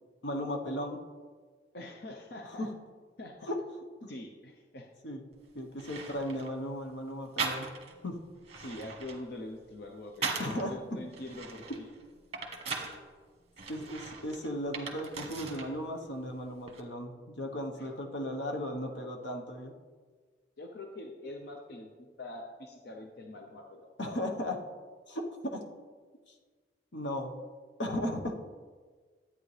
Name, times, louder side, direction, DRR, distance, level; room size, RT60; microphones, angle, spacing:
voice 1, 0.2-1.0 2.5-2.7 3.5-3.6 4.0-4.1 5.0-5.2 5.5-7.7 8.0-8.2 10.4-10.8 13.7-19.7 24.0-24.6 25.1-25.2 25.5-25.6 26.9-27.3 27.8-28.3, left 1 dB, 80° left, 2 dB, 1.1 m, -36 dB
voice 2, 1.7-2.7 3.2-3.3 4.1-4.9 8.6-11.9 17.7-17.9 20.6-23.9, left 1 dB, 60° left, 2 dB, 0.8 m, -44 dB
sound 1, 5.3-5.4 5.8-6.5 7.4-8.0 8.4-10.6 11.1-13.0 13.6-15.7 16.0-16.8, right 4 dB, 35° right, 1.2 m, -39 dB
12.0 x 8.8 x 3.3 m, 1.5 s
head